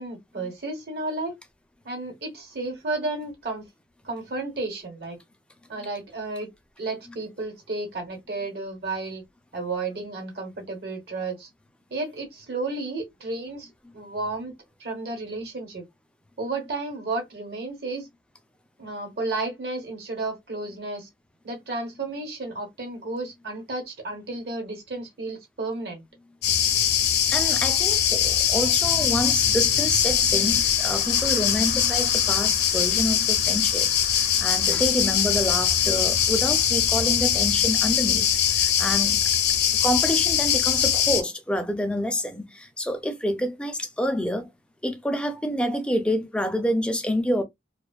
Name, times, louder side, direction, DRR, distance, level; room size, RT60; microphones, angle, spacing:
voice 1, 0.0-1.3 1.8-3.7 4.0-5.2 5.7-6.5 6.8-9.2 9.5-11.5 11.9-13.7 13.9-14.5 14.8-15.8 16.4-18.1 18.8-21.1 21.4-26.0, right 3 dB, 65° right, 1.1 m, -32 dB
sound 1, 26.4-41.2, left 9 dB, 65° left, 0.6 m, -22 dB
voice 2, 27.3-33.9 34.4-39.2 39.8-44.5 44.8-47.4, equal, 5° left, 0.3 m, -27 dB
2.6 x 2.2 x 2.2 m
head